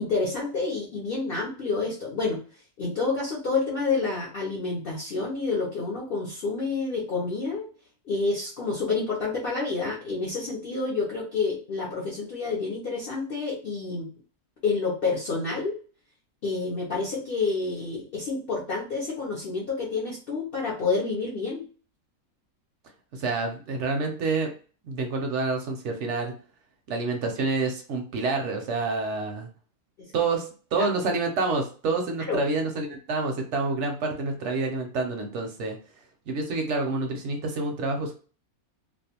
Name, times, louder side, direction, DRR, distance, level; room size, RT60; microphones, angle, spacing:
voice 1, 0.0-2.4 2.8-7.7 8.1-14.1 14.6-15.8 16.4-21.6 30.0-30.1 32.3-32.4, left 4 dB, 60° left, -4 dB, 0.6 m, -28 dB
voice 2, 23.1-24.5 24.8-26.3 26.9-29.5 30.1-35.8 36.3-38.1, right 3 dB, 65° right, 3 dB, 0.7 m, -28 dB
2.5 x 2.1 x 2.7 m, 0.39 s
omnidirectional pair, 1.5 m